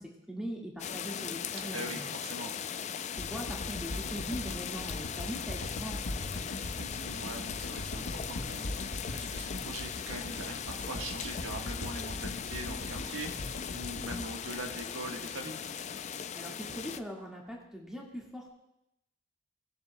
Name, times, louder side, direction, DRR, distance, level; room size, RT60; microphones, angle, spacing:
voice 1, 0.0-2.1 3.1-6.4 16.3-18.5, equal, 5° right, -3 dB, 1.8 m, -41 dB
sound 1, 0.8-17.0, left 8 dB, 35° left, 0.3 m, -39 dB
voice 2, 1.7-2.6 6.8-15.6, right 2 dB, 90° right, 2 dB, 1.4 m, -42 dB
sound 2, 3.2-15.4 15.9-16.0, left 1 dB, 80° left, 1.1 m, -41 dB
19.0 x 7.1 x 2.2 m, 0.82 s
head